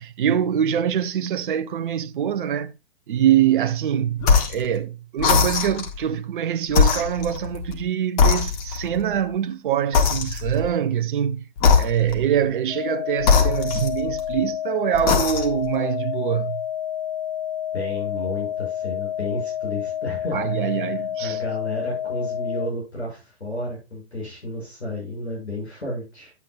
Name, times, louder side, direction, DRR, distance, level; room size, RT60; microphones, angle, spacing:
voice 1, 0.0-2.7 3.1-11.4 11.8-16.6 20.3-21.4, right 9 dB, 50° right, 0.7 m, -24 dB
sound 1, 4.2-4.7 5.2-6.0 6.7-7.8 8.2-9.0 9.9-10.7 11.6-12.3 13.2-14.3 14.9-15.7, left 5 dB, 35° left, 1.9 m, -20 dB
sound 2, 12.7-22.7, left 10 dB, 15° left, 0.5 m, -29 dB
voice 2, 17.7-26.3, left 1 dB, 80° left, 6.8 m, -32 dB
12.0 x 8.5 x 2.4 m
figure-of-eight pair, 120°, 32 cm